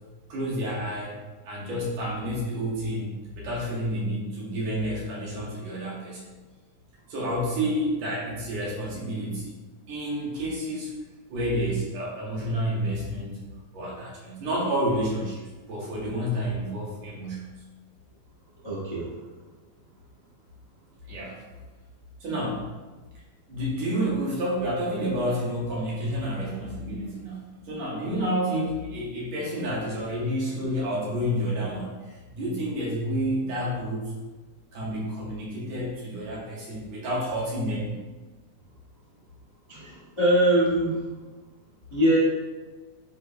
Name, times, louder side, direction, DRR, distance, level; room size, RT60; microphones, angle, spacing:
voice 1, 0.3-1.1 1.5-3.1 3.4-6.3 7.1-9.5 9.9-10.9 11.3-13.4 13.7-15.4 15.7-17.5 21.1-21.4 22.2-22.7 23.5-34.1 34.7-38.0, equal, 65° right, -5 dB, 2.4 m, -29 dB
voice 2, 18.6-19.1 39.7-41.0 41.9-42.2, right 1 dB, 20° left, -9 dB, 0.8 m, -22 dB
9.7 x 4.4 x 2.3 m, 1.2 s
omnidirectional pair, 3.6 m